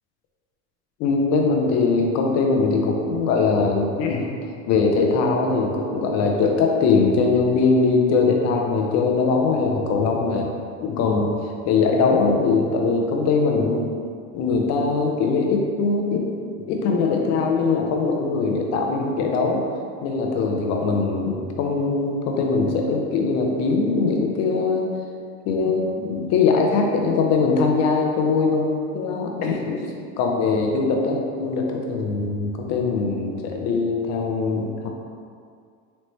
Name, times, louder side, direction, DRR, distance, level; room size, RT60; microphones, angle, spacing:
voice 1, 1.0-4.3 4.7-10.5 10.8-13.8 14.3-16.2 16.7-19.6 20.0-24.9 25.5-29.8 30.2-34.9, left 4 dB, 50° left, 1 dB, 0.7 m, -21 dB
4.2 x 3.0 x 3.1 m, 2.2 s
cardioid pair, 135°, 33 cm